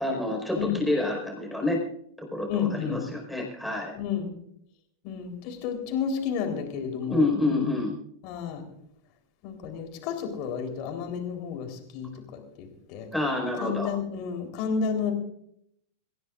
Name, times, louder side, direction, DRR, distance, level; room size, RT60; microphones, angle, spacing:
voice 1, 0.0-1.8 2.2-3.9 7.1-7.9 13.1-13.9, left 2 dB, ahead, 0 dB, 4.9 m, -28 dB
voice 2, 2.5-3.0 3.9-4.3 5.0-7.8 8.2-8.6 9.4-13.1 13.6-15.1, left 7 dB, 45° left, 4 dB, 3.8 m, -31 dB
27.5 x 15.5 x 2.5 m, 0.71 s
figure-of-eight pair, 90°, 0 cm